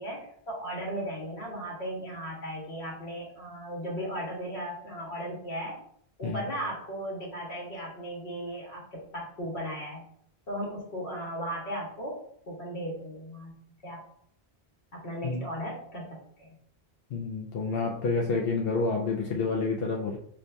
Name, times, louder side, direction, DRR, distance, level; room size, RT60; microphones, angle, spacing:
voice 1, 0.0-5.8 6.2-10.0 10.5-12.2 12.5-13.5 13.8-14.0 14.9-16.5, equal, 90° left, -3 dB, 1.6 m, -36 dB
voice 2, 17.1-20.2, left 4 dB, 65° left, -2 dB, 0.8 m, -29 dB
6.0 x 2.6 x 2.2 m, 0.66 s
omnidirectional pair, 1.1 m